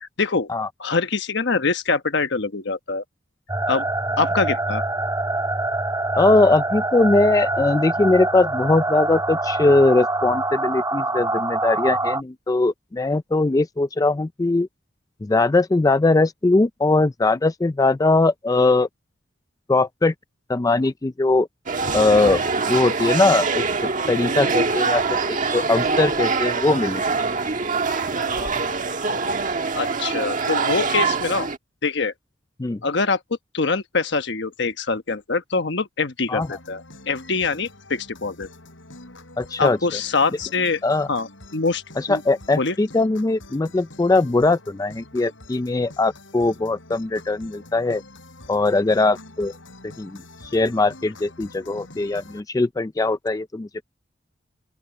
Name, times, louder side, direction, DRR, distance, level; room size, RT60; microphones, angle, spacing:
voice 1, 0.0-0.5 0.8-3.0 3.7-3.8 4.2-4.8 28.3-28.5 29.7-31.5 31.8-32.1 32.8-33.2 33.5-38.5 39.6-40.8 41.1-41.8 42.1-42.2 42.5-42.7, left 4 dB, 65° left, 1.2 m, -24 dB
sound 1, 3.5-12.2, right 2 dB, 20° right, 1.8 m, -25 dB
voice 2, 6.2-14.7 15.2-18.9 19.7-20.1 20.5-21.5 21.9-22.4 22.7-27.0 32.6-32.8 36.3-36.5 39.4-39.8 40.8-41.1 42.0-48.0 48.5-49.5 50.0-53.7, left 2 dB, 20° left, 0.4 m, -20 dB
sound 2, 21.7-31.6, right 4 dB, 45° right, 1.5 m, -24 dB
sound 3, 36.4-52.4, left 2 dB, 90° left, 6.7 m, -46 dB
open air
head